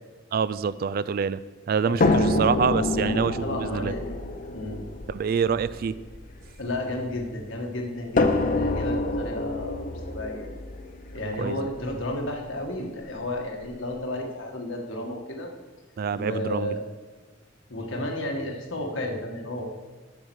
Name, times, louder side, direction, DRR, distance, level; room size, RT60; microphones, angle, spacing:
voice 1, 0.3-1.4 1.7-3.9 5.1-6.0 11.4-11.7 12.8-12.9 16.0-16.8, right 6 dB, 50° right, 17 dB, 0.3 m, -26 dB
voice 2, 1.9-2.5 3.1-4.0 4.5-4.8 6.6-10.5 11.1-15.5 16.1-16.8 17.7-19.7, left 1 dB, 75° left, 1 dB, 1.7 m, -32 dB
sound 1, 2.0-7.2 8.2-12.1 13.1-13.2 13.6-13.7, left 2 dB, 45° left, 0.7 m, -27 dB
8.8 x 6.5 x 6.3 m, 1.3 s
head